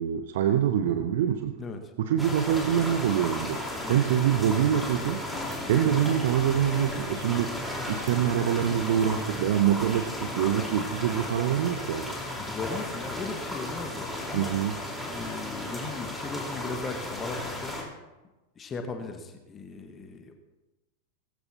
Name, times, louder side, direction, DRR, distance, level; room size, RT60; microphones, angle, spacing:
voice 1, 0.0-1.6 2.0-3.6 3.9-5.2 5.7-7.5 7.9-12.2 14.3-14.8, right 10 dB, 55° right, 9 dB, 0.8 m, -25 dB
voice 2, 1.6-1.9 3.8-4.0 5.8-6.1 12.4-14.5 15.0-17.8 18.6-20.4, left 4 dB, 20° left, 6 dB, 1.5 m, -37 dB
sound 1, 2.2-17.8, left 1 dB, ahead, 4.2 m, -34 dB
19.5 x 15.5 x 2.9 m, 1.1 s
figure-of-eight pair, 90°, 0 cm